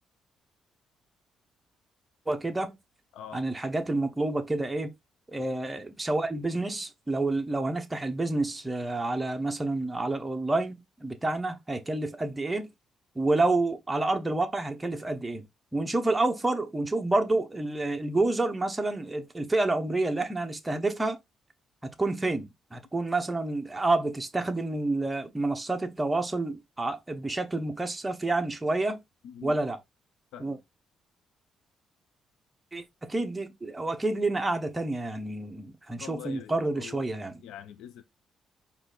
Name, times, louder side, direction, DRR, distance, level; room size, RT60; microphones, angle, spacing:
voice 1, 2.3-2.8 3.3-4.9 5.3-12.7 13.1-15.4 15.7-21.2 21.8-29.0 29.4-29.8 30.4-30.6 32.7-37.3, right 2 dB, 15° right, 1.1 m, -29 dB
voice 2, 3.1-3.5 29.2-29.6 30.3-30.6 36.0-37.0 37.4-38.0, left 9 dB, 85° left, 0.6 m, -44 dB
4.6 x 2.7 x 3.9 m
cardioid pair, 90°, 0 cm